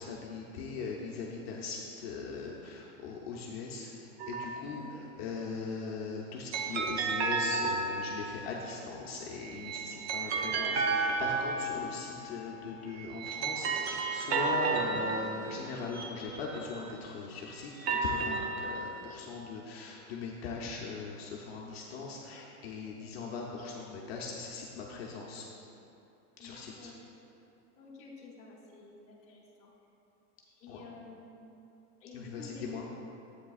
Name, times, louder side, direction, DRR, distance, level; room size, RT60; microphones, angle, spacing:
voice 1, 0.0-25.5 26.4-26.9 30.7-30.8 32.1-32.9, left 4 dB, 45° left, -2 dB, 0.7 m, -40 dB
sound 1, 4.2-4.9 6.5-8.5 9.4-12.2 12.9-17.0 17.6-19.2, right 4 dB, 45° right, 0.6 m, -33 dB
voice 2, 4.7-5.0 11.7-11.8 23.0-23.1 26.4-26.9 27.8-29.7 30.5-31.5 32.0-32.8, left 3 dB, 15° left, -6 dB, 0.8 m, -50 dB
11.0 x 8.3 x 2.4 m, 2.8 s
supercardioid pair, 175°, 45 cm